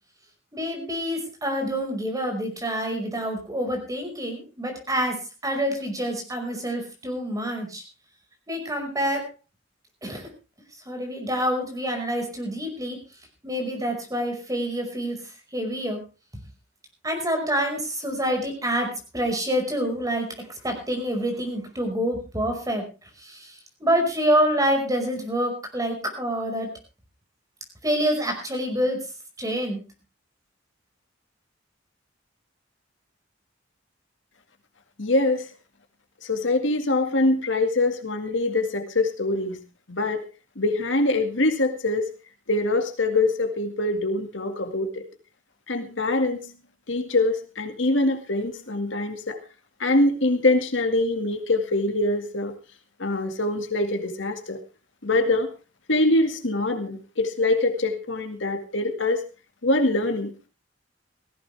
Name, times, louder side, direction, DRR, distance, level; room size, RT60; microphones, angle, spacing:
voice 1, 0.5-7.8 8.5-9.3 10.0-10.2 10.9-13.0 13.4-15.2 15.5-16.0 17.0-20.3 20.6-22.8 23.2-23.5 23.8-26.7 27.8-29.0 29.4-29.8, equal, 20° right, 3 dB, 5.4 m, -27 dB
voice 2, 35.0-35.5 36.2-39.6 39.9-40.2 40.6-42.1 42.5-45.1 45.7-46.5 46.9-49.4 49.8-52.5 53.0-54.6 55.0-55.5 55.9-59.2 59.6-60.5, left 2 dB, 70° left, 6 dB, 2.1 m, -24 dB
18.0 x 15.5 x 3.5 m, 0.32 s
head